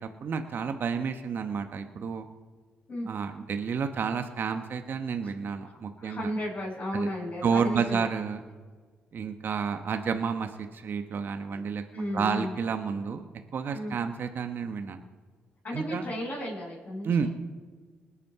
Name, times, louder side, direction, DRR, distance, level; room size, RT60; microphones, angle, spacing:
voice 1, 0.0-2.3 3.1-6.3 6.9-7.1 7.4-8.4 9.1-11.8 12.1-13.3 13.5-15.0 15.7-16.1 17.0-17.3, right 6 dB, 55° right, 7 dB, 1.0 m, -30 dB
voice 2, 5.6-8.1 11.5-11.6 11.9-12.6 13.7-13.9 15.6-17.3, equal, 45° left, -6 dB, 5.3 m, -34 dB
20.0 x 8.5 x 4.7 m, 1.5 s
supercardioid pair, 65°, 4 cm